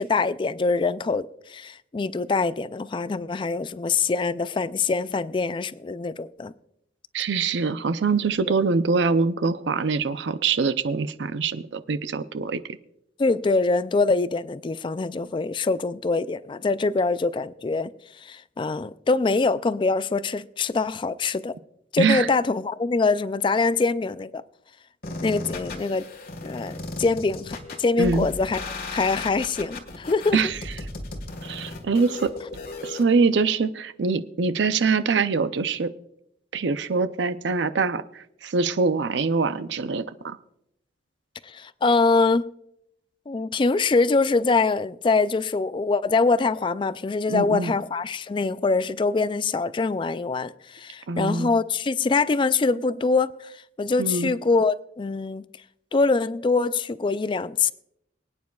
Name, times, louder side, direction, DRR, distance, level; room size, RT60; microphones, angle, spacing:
voice 1, 0.0-6.5 8.5-8.6 13.2-17.9 18.2-21.5 21.9-24.4 25.2-26.1 26.4-28.6 28.9-30.4 41.4-42.5 43.3-55.5 55.9-57.7, left 3 dB, 25° left, 0.3 m, -24 dB
voice 2, 7.1-12.6 22.0-22.3 28.0-28.3 30.3-30.6 31.4-32.3 32.8-35.9 36.5-40.4 47.3-47.7 51.1-51.5 54.0-54.3, right 4 dB, 75° right, 0.5 m, -24 dB
sound 1, 25.0-33.0, left 2 dB, 55° left, 1.6 m, -36 dB
24.0 x 9.4 x 2.3 m
head